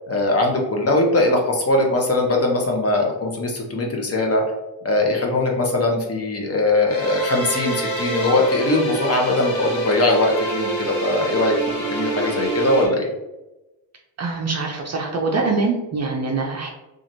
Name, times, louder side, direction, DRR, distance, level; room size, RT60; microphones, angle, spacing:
voice 1, 0.1-4.4 4.8-11.5 11.9-13.1, left 2 dB, 30° left, 0 dB, 0.8 m, -20 dB
sound 1, 6.9-12.9, right 2 dB, 65° left, 1.2 m, -26 dB
voice 2, 14.2-16.7, right 3 dB, 35° right, 1 dB, 0.5 m, -24 dB
2.9 x 2.5 x 2.6 m, 1.0 s
cardioid pair, 80°, 48 cm